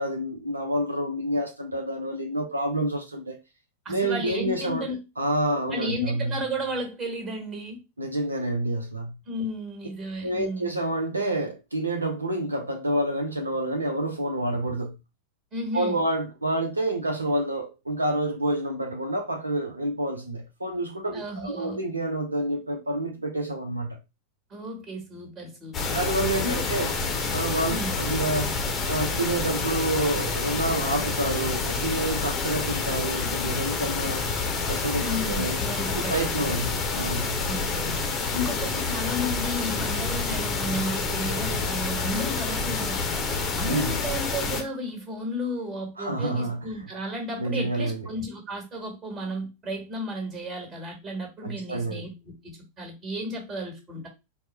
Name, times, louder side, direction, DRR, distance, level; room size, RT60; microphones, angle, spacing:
voice 1, 0.0-3.4 3.9-4.9 5.2-6.4 8.0-9.2 10.2-14.9 15.7-24.0 25.9-26.9 27.3-28.6 28.9-34.3 34.7-35.6 35.9-37.4 43.7-43.9 46.0-46.6 47.4-48.0 51.4-52.1, right 1 dB, 80° right, 0.6 m, -28 dB
voice 2, 3.8-5.0 5.7-7.8 9.2-10.7 15.5-16.0 21.1-21.8 24.5-26.0 26.4-26.7 27.7-27.9 35.0-36.5 37.4-38.0 38.3-43.2 43.5-54.1, equal, 25° right, 1.5 m, -33 dB
sound 1, 25.7-44.6, left 4 dB, 25° left, 0.7 m, -28 dB
4.2 x 2.1 x 3.3 m
figure-of-eight pair, 90°, 0 cm